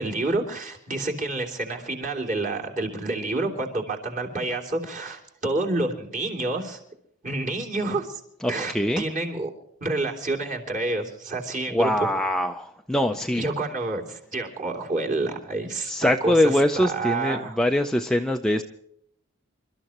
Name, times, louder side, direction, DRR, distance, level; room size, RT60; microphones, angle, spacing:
voice 1, 0.0-6.8 7.2-8.2 8.5-9.5 9.8-12.1 13.3-16.3 16.7-17.6, right 2 dB, 35° right, 1 dB, 3.1 m, -28 dB
voice 2, 8.4-9.0 11.7-13.5 15.8-18.6, left 1 dB, 5° left, 4 dB, 0.5 m, -23 dB
28.0 x 13.5 x 3.0 m, 0.72 s
head